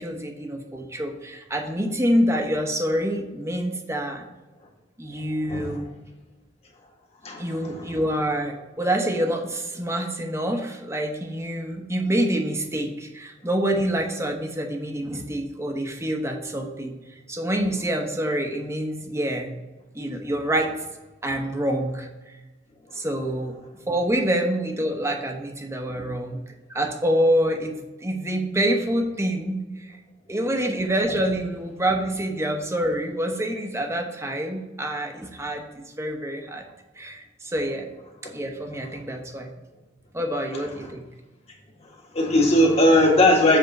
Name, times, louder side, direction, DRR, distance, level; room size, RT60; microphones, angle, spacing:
voice 1, 0.0-4.2 5.0-5.9 7.4-17.0 17.3-19.5 19.9-20.7 21.2-22.1 22.9-23.6 23.9-26.4 26.7-29.9 30.3-35.7 36.0-36.6 37.0-37.9 38.3-39.5 40.1-41.0, right 1 dB, 15° right, 3 dB, 0.9 m, -26 dB
voice 2, 5.5-5.9 7.2-8.0 40.5-40.7 42.1-43.6, left 1 dB, 35° left, -2 dB, 1.7 m, -19 dB
7.8 x 3.5 x 6.5 m, 1.1 s
head